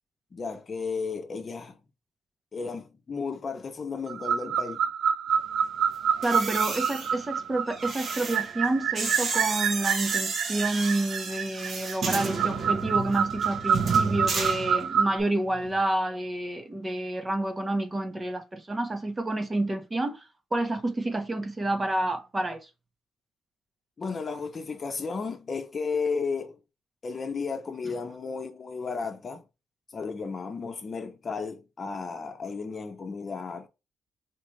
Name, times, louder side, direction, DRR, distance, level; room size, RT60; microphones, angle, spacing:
voice 1, 0.3-1.8 2.5-4.8 24.0-26.6 27.0-29.4 29.9-33.7, left 4 dB, 40° left, 0.8 m, -33 dB
sound 1, 4.1-15.2, right 7 dB, 75° right, 0.4 m, -28 dB
sound 2, 6.1-15.2 15.5-15.8, right 4 dB, 50° right, 0.9 m, -32 dB
voice 2, 6.2-20.3 20.5-22.6, right 2 dB, 25° right, 0.9 m, -29 dB
4.5 x 2.5 x 3.2 m
cardioid pair, 90°, 0 cm